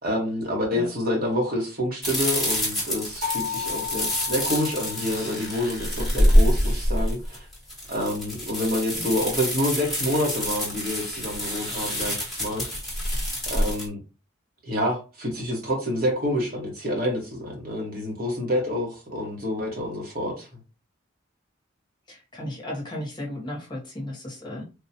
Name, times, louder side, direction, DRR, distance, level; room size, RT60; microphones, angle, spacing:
voice 1, 0.0-7.5 7.9-12.6 13.5-14.0 14.6-20.6, left 1 dB, 45° right, 1.2 m, -28 dB
sound 1, 2.0-13.9, equal, ahead, 1.2 m, -26 dB
sound 2, 3.2-6.0, left 8 dB, 70° right, 1.9 m, -34 dB
voice 2, 22.1-24.6, left 1 dB, 20° left, 1.0 m, -35 dB
3.6 x 2.4 x 2.8 m
head